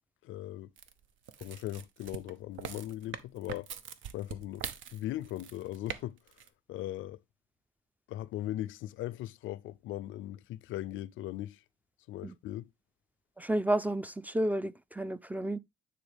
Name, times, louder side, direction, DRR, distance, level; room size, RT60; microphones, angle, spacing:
voice 1, 0.2-0.7 1.4-3.7 4.1-6.2 6.7-7.2 8.1-11.6 12.1-12.7, left 14 dB, 80° left, 0.4 m, -39 dB
sound 1, 0.8-6.0 6.3-6.5, right 9 dB, 75° right, 0.8 m, -43 dB
voice 2, 13.4-15.6, right 1 dB, 10° right, 0.3 m, -31 dB
9.3 x 4.1 x 3.4 m
cardioid pair, 90°, 20 cm